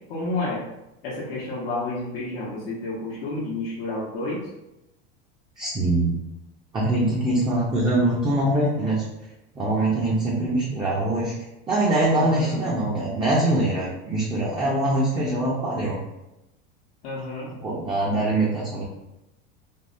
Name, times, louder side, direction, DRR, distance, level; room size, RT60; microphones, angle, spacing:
voice 1, 0.1-0.6 1.0-4.5 12.1-12.6 17.0-17.5, left 2 dB, 85° left, -6 dB, 0.8 m, -30 dB
voice 2, 5.6-6.2 6.7-9.0 9.6-11.3 11.7-16.0 17.6-18.9, right 1 dB, 15° right, -5 dB, 0.4 m, -23 dB
3.4 x 2.0 x 2.5 m, 0.92 s
supercardioid pair, 135°, 29 cm